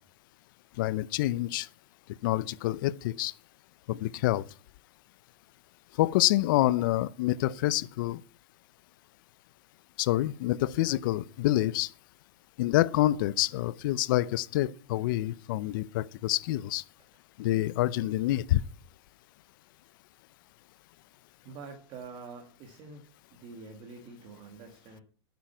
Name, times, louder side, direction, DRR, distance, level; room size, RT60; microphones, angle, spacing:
voice 1, 0.8-1.7 2.2-3.3 3.9-4.4 6.0-8.2 10.0-11.9 12.6-16.8 17.4-18.6, left 15 dB, 50° left, 0.6 m, -27 dB
voice 2, 21.4-23.1 23.3-25.0, right 4 dB, 30° right, 2.0 m, -46 dB
9.3 x 9.1 x 5.8 m
supercardioid pair, 160°, 14 cm